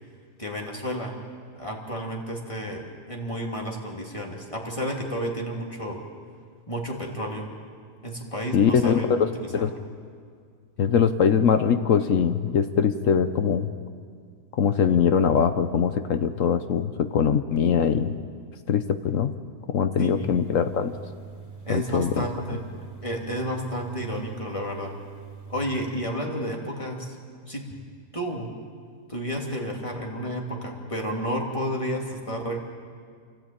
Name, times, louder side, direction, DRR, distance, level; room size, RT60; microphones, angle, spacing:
voice 1, 0.4-1.2 1.6-6.0 6.7-7.5 8.0-9.8 20.0-20.4 21.6-22.6 23.0-24.9 25.5-27.2 27.5-27.6 28.1-28.5 29.1-32.6, equal, 20° left, 0 dB, 2.8 m, -31 dB
voice 2, 8.5-9.3 9.5-9.7 10.8-13.7 14.6-18.2 18.7-19.3 19.7-20.9 21.7-22.3, left 7 dB, 65° left, 10 dB, 1.2 m, -22 dB
sound 1, 20.1-26.0, right 4 dB, 25° right, 3.5 m, -43 dB
29.0 x 14.0 x 8.8 m, 2.1 s
omnidirectional pair, 1.5 m